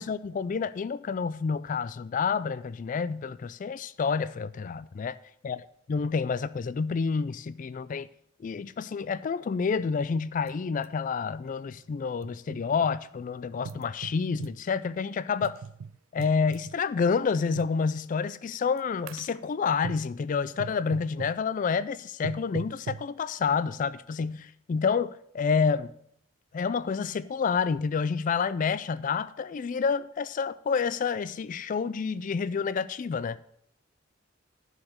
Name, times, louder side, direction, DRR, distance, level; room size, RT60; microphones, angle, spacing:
voice 1, 0.0-5.2 5.4-5.6 5.9-8.1 8.4-15.6 16.1-25.9 26.5-33.4, left 5 dB, 40° left, 0.3 m, -29 dB
sound 1, 10.5-10.6 10.8-10.9 11.8-12.9 13.6-14.6 15.4-16.8 17.5-17.8 18.5-18.8 19.1-19.4 19.8-20.1 20.6-21.4 22.2-23.1, right 6 dB, 90° right, 0.4 m, -40 dB
10.5 x 5.0 x 6.4 m
head